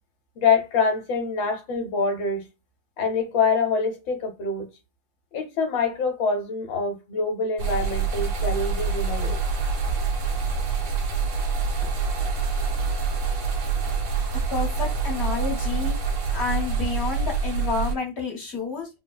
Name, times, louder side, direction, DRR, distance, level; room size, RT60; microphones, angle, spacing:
voice 1, 0.4-2.5 3.0-4.7 5.3-9.4, left 4 dB, 70° left, 1.3 m, -25 dB
sound 1, 7.6-18.0, right 5 dB, 85° right, 1.7 m, -26 dB
voice 2, 14.5-16.0 16.3-18.9, left 4 dB, 40° left, 1.1 m, -29 dB
3.8 x 2.0 x 2.2 m
omnidirectional pair, 2.4 m